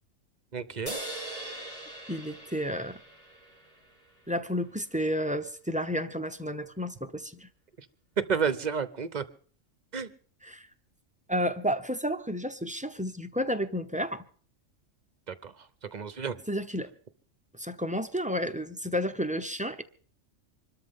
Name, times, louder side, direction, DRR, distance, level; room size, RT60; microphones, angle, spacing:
voice 1, 0.5-1.0 7.8-7.9 8.2-9.2 9.9-10.1 15.3-16.4, right 6 dB, 40° right, 14 dB, 0.8 m, -31 dB
sound 1, 0.9-4.3, right 1 dB, 50° left, 4.3 m, -41 dB
voice 2, 2.1-3.0 4.3-7.5 10.5-10.7 11.3-14.2 16.5-16.9 17.5-19.8, equal, 10° right, 8 dB, 0.5 m, -31 dB
25.5 x 13.0 x 3.6 m, 0.43 s
omnidirectional pair, 1.3 m